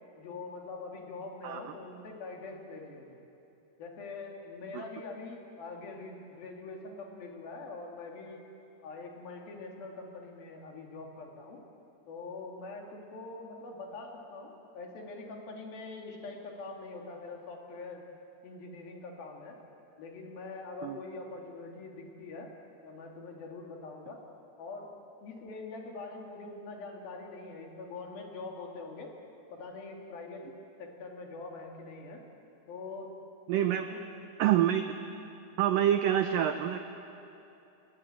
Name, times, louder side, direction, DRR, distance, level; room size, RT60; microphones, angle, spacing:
voice 1, 0.2-3.2 3.8-8.4 8.8-11.6 12.1-18.0 18.4-19.6 20.0-22.5 22.8-24.2 24.6-24.9 25.2-29.1 29.5-30.5 30.8-32.2 32.7-33.1 33.7-34.0, left 3 dB, 60° left, 1 dB, 4.2 m, -43 dB
voice 2, 33.5-33.9 34.4-35.0 35.6-36.8, right 11 dB, 80° right, 8 dB, 2.0 m, -27 dB
27.5 x 20.5 x 8.9 m, 2.8 s
omnidirectional pair, 5.0 m